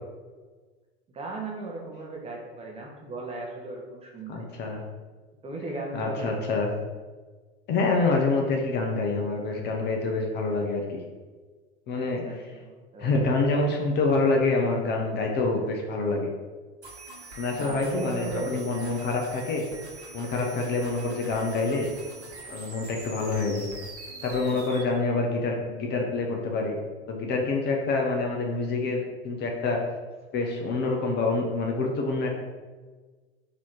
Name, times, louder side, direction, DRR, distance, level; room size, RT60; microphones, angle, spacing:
voice 1, 1.1-4.4 5.4-6.3 11.9-13.1 17.5-19.0 24.4-24.9, right 2 dB, 20° right, -1 dB, 0.8 m, -37 dB
voice 2, 4.3-4.8 5.9-6.7 7.7-11.0 11.9-12.2 13.0-16.3 17.4-19.6 20.1-21.9 22.5-23.7 24.2-26.8 27.1-29.8 30.3-32.4, left 3 dB, 30° left, 1 dB, 0.7 m, -26 dB
sound 1, 16.8-24.8, right 3 dB, 80° right, 1.4 m, -43 dB
4.1 x 2.8 x 4.4 m, 1.4 s
figure-of-eight pair, 85°, 33 cm